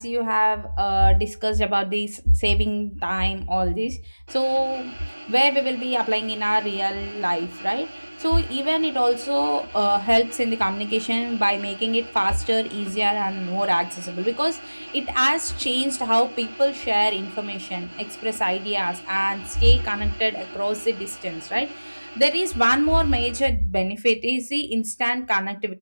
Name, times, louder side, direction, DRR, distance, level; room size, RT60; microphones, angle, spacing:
voice 1, 0.0-5.0 5.3-7.9 8.2-25.7, equal, 60° right, 0.5 m, -23 dB
sound 1, 4.3-23.4, right 1 dB, 10° right, 0.4 m, -40 dB
3.0 x 2.2 x 4.0 m
figure-of-eight pair, 180°, 0 cm